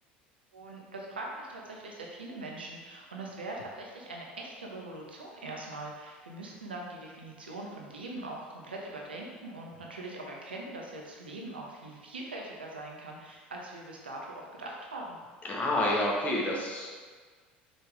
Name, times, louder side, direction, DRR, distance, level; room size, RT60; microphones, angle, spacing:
voice 1, 0.5-15.2, right 2 dB, 80° right, -1 dB, 1.0 m, -42 dB
voice 2, 15.5-16.9, left 1 dB, 25° left, -3 dB, 1.6 m, -28 dB
5.8 x 5.0 x 3.5 m, 1.5 s
figure-of-eight pair, 70°, 5 cm